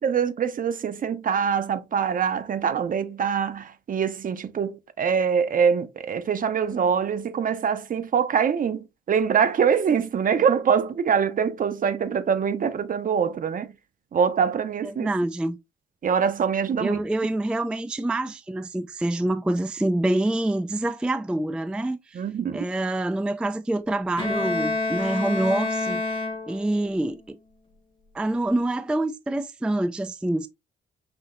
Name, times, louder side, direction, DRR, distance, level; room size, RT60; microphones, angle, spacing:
voice 1, 0.0-13.7 14.1-15.1 16.0-17.0 22.1-22.6, right 7 dB, 45° right, 0.6 m, -24 dB
voice 2, 14.8-15.6 16.8-22.2 22.5-27.4 28.1-30.5, right 1 dB, 5° right, 0.3 m, -26 dB
Bowed string instrument, 24.2-26.9, left 3 dB, 25° left, 1.0 m, -28 dB
5.9 x 2.7 x 2.5 m
cardioid pair, 90°, 20 cm